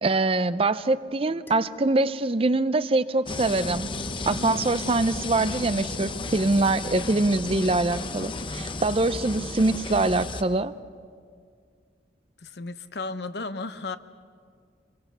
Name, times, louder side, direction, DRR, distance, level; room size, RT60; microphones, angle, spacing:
voice 1, 0.0-3.9 4.3-10.7, right 2 dB, 30° right, 14 dB, 0.5 m, -24 dB
sound 1, 1.5-3.9, left 5 dB, 15° left, 2.1 m, -50 dB
sound 2, 3.3-10.4, left 3 dB, 30° left, 0.8 m, -33 dB
voice 2, 12.4-14.0, left 3 dB, 65° left, 11 dB, 0.8 m, -34 dB
26.0 x 22.5 x 6.9 m, 2.1 s
head